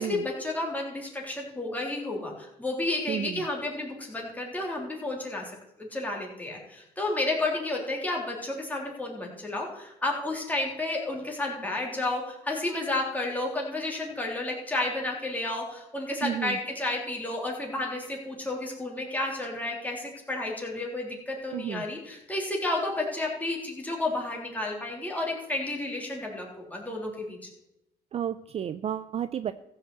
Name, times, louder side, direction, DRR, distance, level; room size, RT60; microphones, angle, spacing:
voice 1, 0.0-27.4, left 2 dB, 10° left, -2 dB, 3.4 m, -31 dB
voice 2, 3.1-3.4 16.2-16.6 21.5-21.9 28.1-29.5, right 9 dB, 35° right, 13 dB, 0.4 m, -32 dB
14.5 x 5.7 x 7.9 m, 0.86 s
cardioid pair, 110°, 17 cm